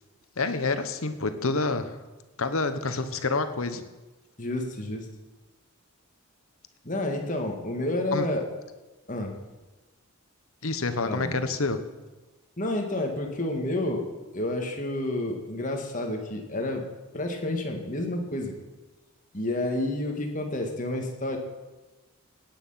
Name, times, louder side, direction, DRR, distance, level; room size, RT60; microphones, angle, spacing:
voice 1, 0.4-2.0 2.4-3.8 8.1-8.3 10.6-11.8, left 3 dB, 70° left, 10 dB, 1.1 m, -28 dB
voice 2, 4.4-5.1 6.8-8.5 9.1-9.3 11.1-11.4 12.6-14.1 14.3-16.8 17.1-18.6 19.3-21.4, left 1 dB, 35° left, 2 dB, 1.9 m, -30 dB
17.0 x 9.1 x 5.7 m, 1.1 s
head